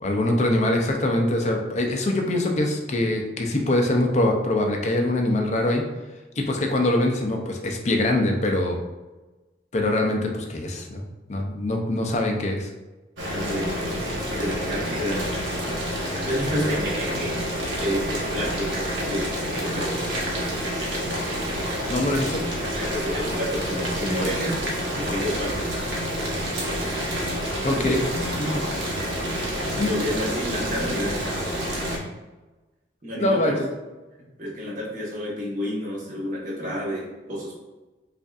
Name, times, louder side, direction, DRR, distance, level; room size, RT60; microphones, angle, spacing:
voice 1, 0.0-5.8 6.4-8.8 9.7-11.0 11.3-12.7 21.9-22.4 27.6-28.0 29.7-29.9 33.2-33.7, left 1 dB, 35° left, 2 dB, 0.5 m, -23 dB
Boiling, 13.2-32.0, equal, 90° right, 0.9 m, -28 dB
voice 2, 13.3-15.3 16.2-17.5 17.8-20.0 22.7-24.6 24.9-25.5 27.6-28.0 28.4-28.6 29.6-31.3 33.0-33.6 34.4-37.6, equal, 45° right, -6 dB, 1.1 m, -29 dB
5.1 x 2.5 x 2.4 m, 1.1 s
head